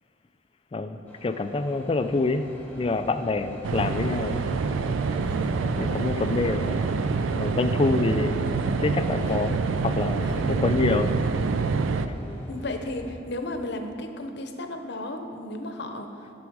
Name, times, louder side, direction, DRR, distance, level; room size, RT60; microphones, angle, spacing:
voice 1, 0.7-2.5 2.8-4.4 5.8-6.9 7.3-8.5 8.8-10.2 10.6-11.1, left 3 dB, 30° left, 9 dB, 0.4 m, -26 dB
sound 1, 1.1-13.1, equal, 10° left, 1.3 m, -41 dB
sound 2, 3.6-12.1, right 4 dB, 85° right, 0.4 m, -26 dB
voice 2, 5.2-5.8 9.2-9.4 10.2-10.7 12.5-16.3, left 1 dB, 60° left, 5 dB, 0.8 m, -34 dB
12.0 x 6.2 x 4.7 m, 2.6 s
head